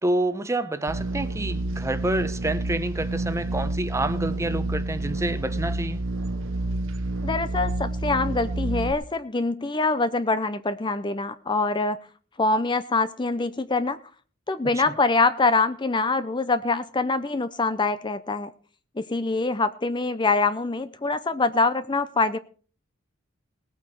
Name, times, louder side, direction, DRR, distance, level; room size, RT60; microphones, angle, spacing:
voice 1, 0.0-6.0 14.6-15.0, right 1 dB, 15° right, 0.8 m, -28 dB
sound 1, 0.9-8.9, right 2 dB, 75° right, 0.9 m, -29 dB
voice 2, 7.2-12.0 12.4-14.0 14.5-18.5 19.0-22.4, left 3 dB, 25° left, 0.6 m, -24 dB
19.5 x 8.6 x 4.5 m
head